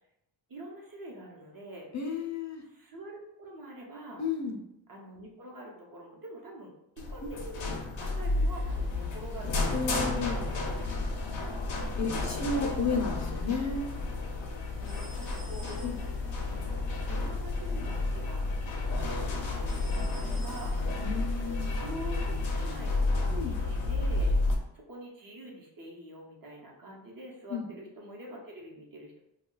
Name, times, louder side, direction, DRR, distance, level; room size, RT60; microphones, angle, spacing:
voice 1, 0.5-1.9 2.6-4.2 4.9-7.7 8.0-10.2 11.7-12.2 14.8-15.8 16.3-16.8 17.1-18.4 19.0-20.8 21.3-21.4 21.8-23.1 23.5-24.3 24.7-29.2, right 1 dB, 45° right, -1 dB, 0.9 m, -45 dB
voice 2, 1.9-2.6 4.2-4.6 9.7-10.5 12.0-13.9 15.8-15.9 21.0-21.7 23.3-23.6 27.5-27.7, left 4 dB, 40° left, 1 dB, 0.6 m, -32 dB
sound 1, 7.0-24.5, left 2 dB, 90° left, 0.6 m, -31 dB
sound 2, 14.9-16.3 19.7-21.1, right 2 dB, 75° right, 1.1 m, -51 dB
2.3 x 2.2 x 3.8 m, 0.82 s
cardioid pair, 55°, 45 cm